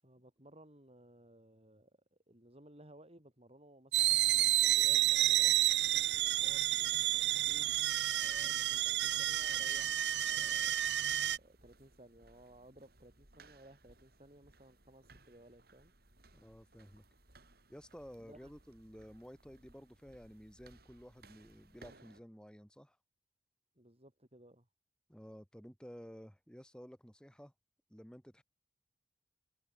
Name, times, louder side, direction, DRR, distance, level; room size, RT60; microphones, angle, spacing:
voice 1, 0.0-10.7 11.3-15.9 18.2-18.5 23.7-24.7, right 1 dB, 35° right, 5.0 m, -59 dB
sound 1, 3.9-11.4, right 14 dB, 75° right, 0.8 m, -30 dB
sound 2, 10.6-22.2, right 2 dB, 60° right, 6.0 m, -63 dB
voice 2, 16.3-17.0 17.7-23.0 25.1-27.5 27.9-28.4, equal, 5° left, 6.4 m, -53 dB
head